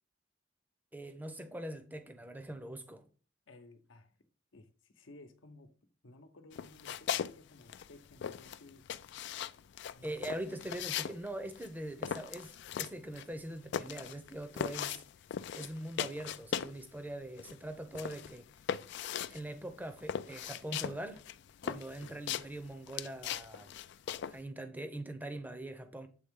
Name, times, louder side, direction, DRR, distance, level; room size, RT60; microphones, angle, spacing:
voice 1, 0.9-3.1 10.0-15.0 15.5-18.5 19.3-21.2 21.6-23.7 24.3-26.1, right 1 dB, 10° right, 0.6 m, -42 dB
voice 2, 3.5-4.1 4.5-5.7 6.0-8.8 9.9-10.9 22.0-22.3, left 2 dB, 80° left, 0.9 m, -57 dB
sound 1, 6.5-7.4 7.6-16.8 17.1-24.4, left 9 dB, 65° left, 0.3 m, -39 dB
7.9 x 3.6 x 3.6 m
head